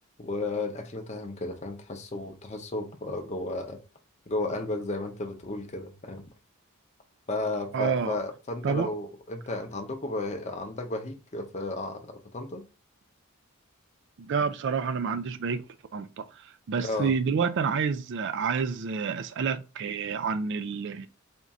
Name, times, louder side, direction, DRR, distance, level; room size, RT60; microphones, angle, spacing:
voice 1, 0.2-3.8 4.3-6.2 7.3-12.7 16.8-17.1, left 2 dB, 30° left, 0.6 m, -33 dB
voice 2, 7.7-8.2 8.6-8.9 14.2-15.6 15.9-16.3 16.7-21.1, right 6 dB, 55° right, 0.3 m, -28 dB
3.6 x 2.5 x 4.1 m
head